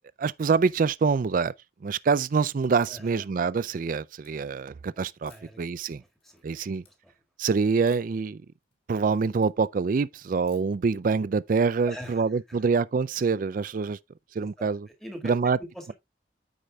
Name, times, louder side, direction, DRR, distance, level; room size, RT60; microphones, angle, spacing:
voice 1, 0.2-1.5 1.8-5.3 5.6-6.0 6.4-6.8 7.4-8.4 8.9-14.0 14.3-14.9 15.2-15.6, right 5 dB, 50° right, 0.4 m, -25 dB
sound 1, 2.8-3.2 3.6-4.3 5.3-5.7 6.1-6.5 6.8-6.9 7.9-8.2 8.6-9.5 10.5-10.8, left 5 dB, 35° left, 3.1 m, -59 dB
voice 2, 2.9-3.3 5.2-6.4 6.9-7.1 11.8-12.7 14.4-15.9, equal, ahead, 1.8 m, -44 dB
13.0 x 5.0 x 2.3 m
head